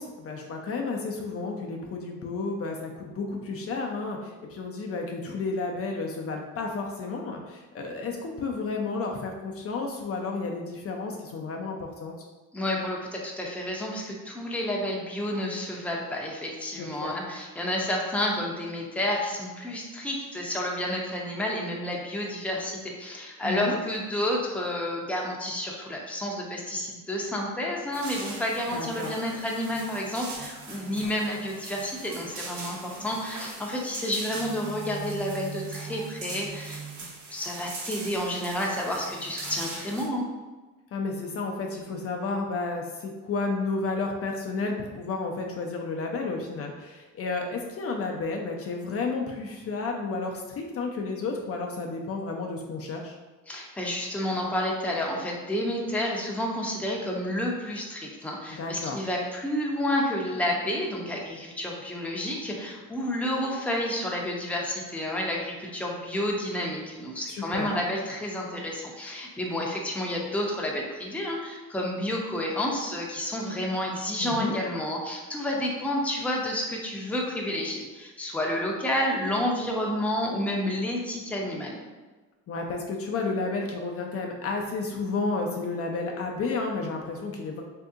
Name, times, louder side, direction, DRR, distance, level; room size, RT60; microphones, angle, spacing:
voice 1, 0.0-12.1 16.8-17.2 23.4-23.8 28.7-29.1 40.9-53.2 58.6-59.0 67.3-67.7 74.2-74.6 82.5-87.6, left 3 dB, 50° left, 1 dB, 0.5 m, -32 dB
voice 2, 12.5-40.3 53.5-81.8, left 1 dB, 5° left, -2 dB, 0.6 m, -30 dB
sound 1, 27.9-40.1, right 3 dB, 70° right, 0.8 m, -40 dB
3.5 x 2.7 x 2.4 m, 1.2 s
cardioid pair, 90°, 30 cm